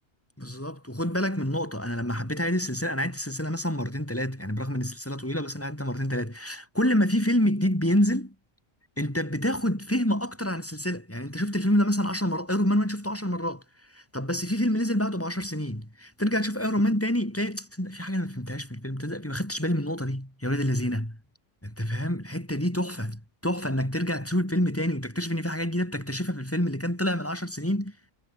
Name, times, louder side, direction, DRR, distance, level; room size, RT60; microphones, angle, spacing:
voice 1, 0.4-8.3 9.0-13.6 13.9-21.2 21.6-27.9, equal, 10° left, 5.1 m, -27 dB
omnidirectional pair, 1.4 m